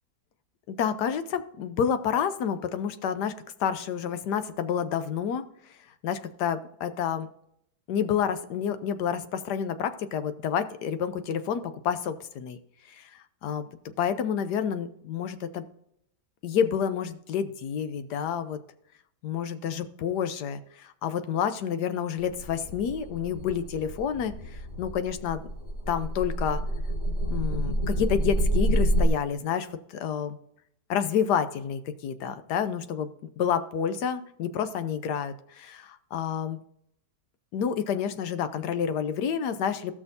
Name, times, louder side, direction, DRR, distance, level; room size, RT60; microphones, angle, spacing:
voice 1, 0.7-3.3 3.6-5.4 6.0-7.3 7.9-12.6 12.9-13.1 13.4-13.7 14.0-15.7 16.4-18.6 19.2-24.3 24.8-25.5 25.9-26.6 27.3-30.4 30.9-33.1 33.4-36.6 37.5-39.9, left 8 dB, 75° left, 11 dB, 1.3 m, -29 dB
sound 1, 22.2-29.1, right 1 dB, 20° left, 2.3 m, -28 dB
15.0 x 6.1 x 2.7 m, 0.75 s
omnidirectional pair, 1.8 m